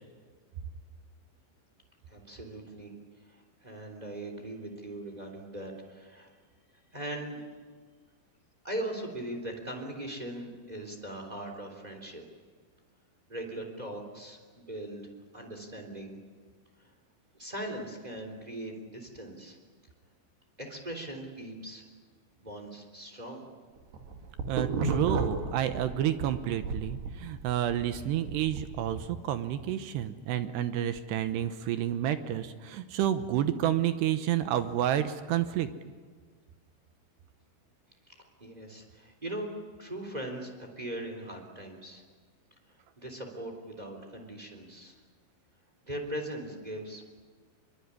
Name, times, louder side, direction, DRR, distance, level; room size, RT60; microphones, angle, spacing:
voice 1, 2.1-2.9 3.3-6.3 6.9-7.4 8.6-12.2 13.3-15.1 15.3-16.2 16.8-16.9 17.4-19.6 20.6-21.8 22.4-23.4 38.1-38.2 38.4-39.5 39.8-42.0 43.0-44.9 45.8-47.2, right 1 dB, 10° right, 3 dB, 2.5 m, -40 dB
sound 1, 23.8-26.3 26.6-29.0, right 4 dB, 60° right, 4.1 m, -33 dB
voice 2, 24.5-35.7, right 11 dB, 75° right, 10 dB, 2.6 m, -30 dB
26.5 x 23.0 x 9.9 m, 1.5 s
omnidirectional pair, 5.8 m